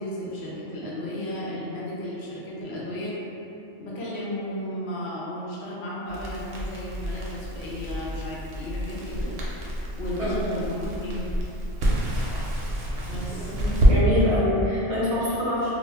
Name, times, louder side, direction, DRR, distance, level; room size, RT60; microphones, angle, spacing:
voice 1, 0.0-3.2 3.8-9.3 10.0-10.7 11.0-11.3 13.1-13.6, equal, 65° left, -6 dB, 0.8 m, -34 dB
Crackle, 6.1-13.9, equal, 65° right, 0.8 m, -27 dB
voice 2, 13.3-15.8, left 1 dB, 45° right, -9 dB, 0.5 m, -25 dB
2.3 x 2.3 x 3.3 m, 2.8 s
omnidirectional pair, 1.3 m